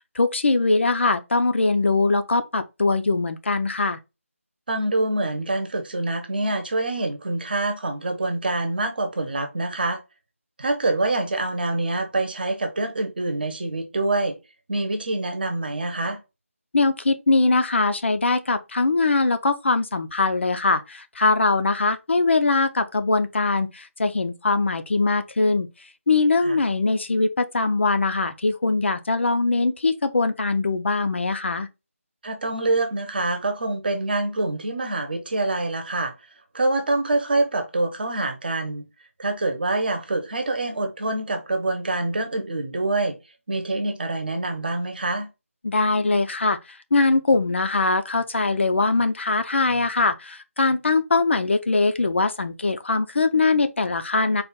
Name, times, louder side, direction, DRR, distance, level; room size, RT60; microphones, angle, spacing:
voice 1, 0.2-4.0 16.7-25.7 26.1-31.7 45.6-46.6 46.9-54.4, left 3 dB, 55° left, 0.5 m, -22 dB
voice 2, 4.7-10.0 10.6-14.4 14.7-16.2 26.4-26.6 32.2-36.1 36.5-38.8 39.2-43.2 43.5-45.3, right 2 dB, 40° right, 0.9 m, -25 dB
4.0 x 2.4 x 3.5 m
figure-of-eight pair, 160°, 8 cm